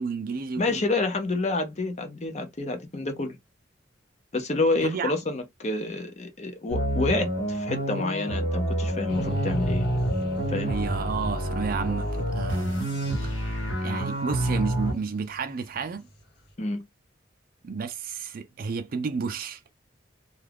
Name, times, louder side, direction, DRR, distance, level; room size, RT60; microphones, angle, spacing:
voice 1, 0.0-0.8 4.8-5.1 10.6-12.8 13.2-13.3 13.8-16.1 17.6-19.6, right 5 dB, 50° right, 0.4 m, -31 dB
voice 2, 0.6-3.4 4.3-9.9 10.5-10.7 16.6-16.8, left 2 dB, 40° left, 0.7 m, -28 dB
sound 1, 6.7-14.9, right 1 dB, 90° left, 1.2 m, -28 dB
sound 2, 9.1-16.2, right 1 dB, 60° left, 0.9 m, -37 dB
2.3 x 2.3 x 3.4 m
head